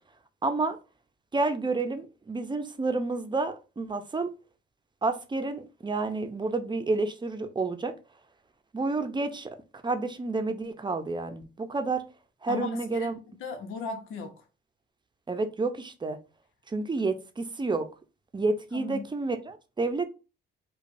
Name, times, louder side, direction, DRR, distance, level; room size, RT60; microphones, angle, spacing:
voice 1, 0.4-0.8 1.3-4.3 5.0-7.9 8.7-9.5 9.8-12.0 12.4-13.2 15.3-16.2 16.7-17.9 18.3-20.0, right 3 dB, 25° right, 0.6 m, -29 dB
voice 2, 12.5-13.1 13.4-14.5 18.7-19.1, left 4 dB, 90° left, 1.0 m, -36 dB
5.0 x 2.3 x 2.6 m
cardioid pair, 90°, 20 cm